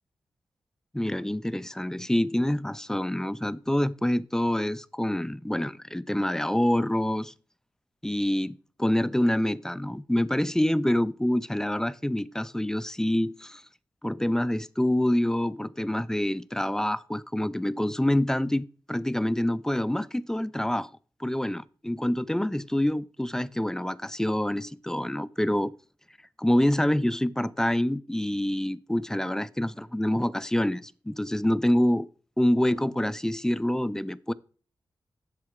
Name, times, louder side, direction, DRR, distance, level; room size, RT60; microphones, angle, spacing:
voice 1, 0.9-7.3 8.0-13.6 14.0-20.9 21.2-25.7 26.4-32.1 32.4-34.3, left 1 dB, 5° left, 0.3 m, -26 dB
7.7 x 7.4 x 3.6 m
wide cardioid pair, 90°, 9 cm